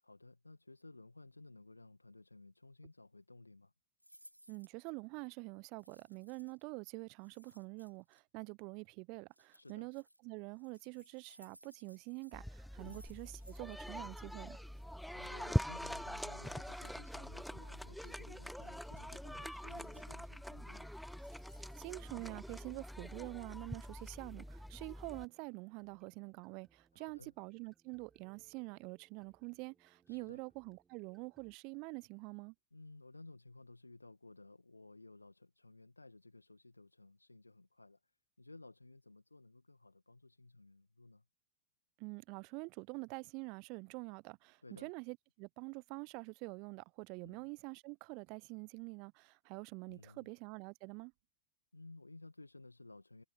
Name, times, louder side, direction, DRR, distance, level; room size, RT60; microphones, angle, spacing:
voice 1, 0.0-3.7 9.5-9.9 12.8-13.0 15.1-20.9 26.9-27.3 30.1-30.4 32.7-41.3 44.6-44.9 47.2-47.5 49.9-50.3 51.7-53.2, left 2 dB, 80° left, 1.9 m, -57 dB
sound 1, 4.0-4.8 5.8-6.6 7.2-8.2 9.3-10.2 10.5-13.9 14.1-14.2 14.5-14.8 15.9-17.0 18.0-18.2 18.5-19.3 19.7-20.2 20.9-22.6 22.9-23.0, equal, 90° right, 2.4 m, -64 dB
voice 2, 4.5-14.6 21.7-32.5 42.0-51.1, right 31 dB, 45° right, 0.9 m, -46 dB
sound 2, 12.3-25.3, equal, ahead, 0.4 m, -43 dB
sound 3, 14.5-31.6, right 5 dB, 15° right, 5.6 m, -72 dB
figure-of-eight pair, 90°, 0 cm